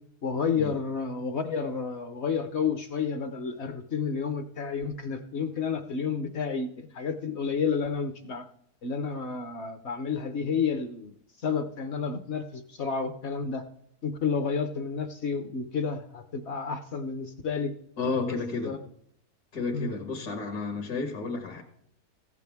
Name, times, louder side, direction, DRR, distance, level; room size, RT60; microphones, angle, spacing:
voice 1, 0.2-8.4 8.8-11.1 11.4-13.6 14.0-17.7 18.3-18.4 18.6-18.8 19.7-19.9, left 5 dB, 55° left, 9 dB, 0.9 m, -30 dB
voice 2, 18.0-18.8 19.5-21.6, left 4 dB, 75° left, 4 dB, 2.0 m, -31 dB
15.0 x 8.4 x 3.5 m, 0.69 s
omnidirectional pair, 1.7 m